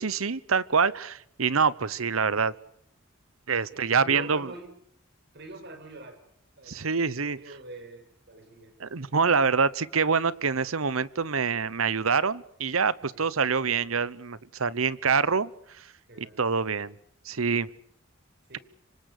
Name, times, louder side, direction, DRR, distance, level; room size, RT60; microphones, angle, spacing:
voice 1, 0.0-2.5 3.5-4.5 6.7-7.4 8.8-15.5 16.2-16.9 17.2-17.7, right 5 dB, 80° right, 19 dB, 1.0 m, -26 dB
voice 2, 3.7-4.7 5.3-6.2 6.6-8.7 13.1-13.3 15.0-15.4 16.1-16.4 18.5-18.6, right 2 dB, 55° right, 7 dB, 5.6 m, -44 dB
26.5 x 25.0 x 6.8 m, 0.67 s
head